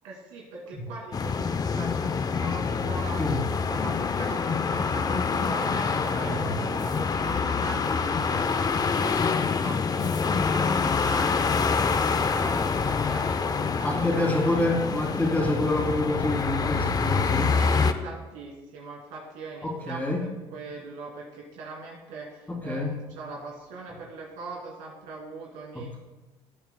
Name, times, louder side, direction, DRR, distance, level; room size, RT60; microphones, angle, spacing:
voice 1, 0.0-3.2 3.7-14.7 17.5-26.0, right 3 dB, 85° right, -2 dB, 2.5 m, -41 dB
sound 1, 1.1-17.9, left 5 dB, 30° left, 0.6 m, -26 dB
voice 2, 6.2-6.6 13.8-17.6 19.6-20.3 22.5-23.0 25.7-26.0, left 2 dB, 15° left, -2 dB, 3.1 m, -27 dB
16.0 x 9.1 x 2.2 m, 1.1 s
supercardioid pair, 80°, 12 cm